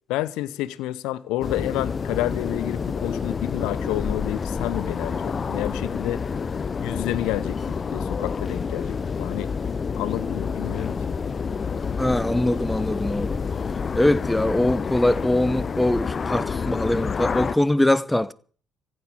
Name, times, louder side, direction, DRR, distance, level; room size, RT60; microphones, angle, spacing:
voice 1, 0.1-6.2 6.8-7.6 7.9-9.5 10.0-11.1, left 15 dB, 70° left, 0.8 m, -29 dB
sound 1, 1.4-17.6, left 5 dB, 40° left, 0.6 m, -28 dB
voice 2, 12.0-13.4 13.9-18.3, left 1 dB, 10° left, 0.9 m, -22 dB
15.5 x 7.6 x 9.8 m
hypercardioid pair, 50°, 0 cm